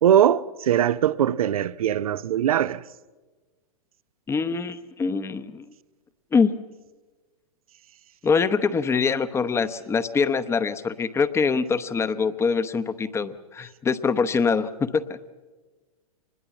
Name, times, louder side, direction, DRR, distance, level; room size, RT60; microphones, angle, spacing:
voice 1, 0.0-2.8, right 10 dB, 70° right, 0.7 m, -21 dB
voice 2, 4.3-5.7 6.3-6.5 8.2-15.0, left 5 dB, 15° left, 0.9 m, -24 dB
25.0 x 20.5 x 7.2 m
hypercardioid pair, 115°, 19 cm